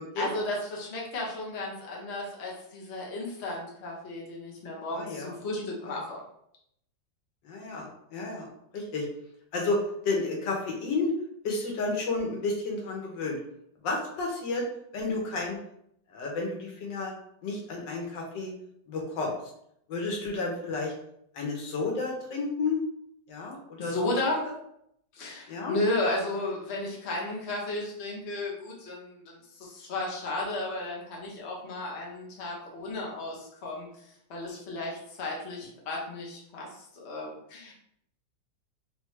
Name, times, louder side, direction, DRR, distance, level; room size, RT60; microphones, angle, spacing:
voice 1, 0.2-6.2 23.8-24.5 25.1-37.7, left 2 dB, 45° left, -2 dB, 1.2 m, -34 dB
voice 2, 4.9-5.3 5.6-6.0 7.5-8.5 8.7-9.1 9.5-9.8 10.0-11.1 11.4-13.4 13.8-14.6 14.9-15.6 16.1-17.1 17.4-18.5 18.9-19.3 19.9-20.9 21.3-22.8 23.3-24.1 25.5-25.8, left 3 dB, 90° left, 0 dB, 1.6 m, -31 dB
3.8 x 3.4 x 3.2 m, 0.74 s
omnidirectional pair, 1.9 m